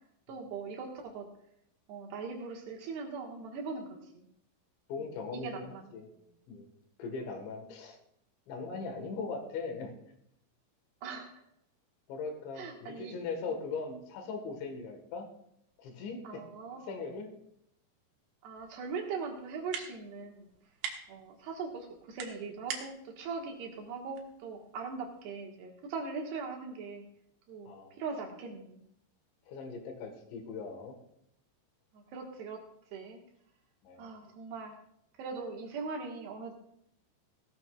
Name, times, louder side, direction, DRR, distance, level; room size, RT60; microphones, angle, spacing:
voice 1, 0.3-1.3 1.9-3.9 4.1-4.2 5.0-5.1 5.4-5.9 11.0-11.4 12.6-13.2 13.5-13.6 16.2-17.0 18.4-20.5 21.1-27.0 27.5-27.7 28.0-28.8 31.9-33.2 34.0-34.8 35.2-36.5, right 4 dB, 70° right, 1 dB, 3.4 m, -40 dB
voice 2, 4.9-6.1 6.5-6.7 7.0-8.0 8.5-9.9 12.1-15.3 15.8-16.4 16.8-17.3 27.7-28.0 29.5-30.9 33.8-34.1, left 4 dB, 80° left, 4 dB, 3.8 m, -39 dB
sound 1, 18.5-25.3, right 7 dB, 85° right, 3.7 m, -46 dB
18.0 x 13.0 x 2.4 m, 0.74 s
omnidirectional pair, 5.2 m